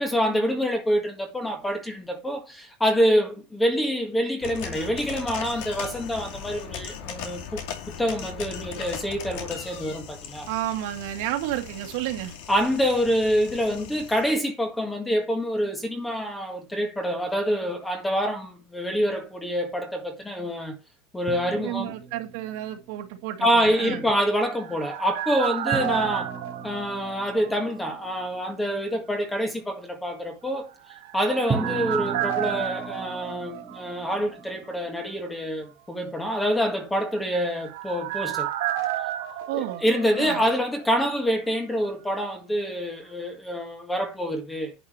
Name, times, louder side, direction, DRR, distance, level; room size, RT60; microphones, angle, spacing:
voice 1, 0.0-7.6 8.0-10.5 12.5-20.8 21.1-21.9 23.4-26.3 26.6-30.7 31.1-38.5 39.5-44.7, equal, 5° left, 1.7 m, -26 dB
sound 1, 4.4-14.4, left 8 dB, 55° left, 2.4 m, -38 dB
voice 2, 10.5-12.3 21.5-24.1 39.5-39.8 40.2-40.4, right 14 dB, 55° right, 2.0 m, -31 dB
sound 2, 21.3-23.1 25.7-28.6 31.5-35.3, right 5 dB, 15° right, 1.3 m, -36 dB
sound 3, 24.2-27.9 28.2-28.3 30.7-34.4 34.7-34.8 37.0-40.9 41.1-41.2, right 13 dB, 70° right, 2.1 m, -32 dB
10.5 x 7.2 x 3.1 m
supercardioid pair, 170°, 0 cm